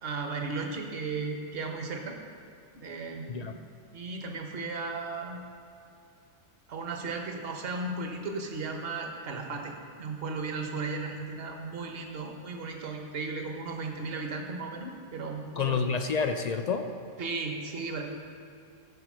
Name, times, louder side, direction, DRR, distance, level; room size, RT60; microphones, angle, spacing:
voice 1, 0.0-2.2 2.7-3.6 3.9-5.4 6.7-9.7 10.0-15.8 17.2-18.0, right 3 dB, 50° right, 3 dB, 1.3 m, -35 dB
voice 2, 15.6-16.9, left 5 dB, 60° left, 6 dB, 0.4 m, -28 dB
15.0 x 5.0 x 6.1 m, 2.5 s
omnidirectional pair, 1.3 m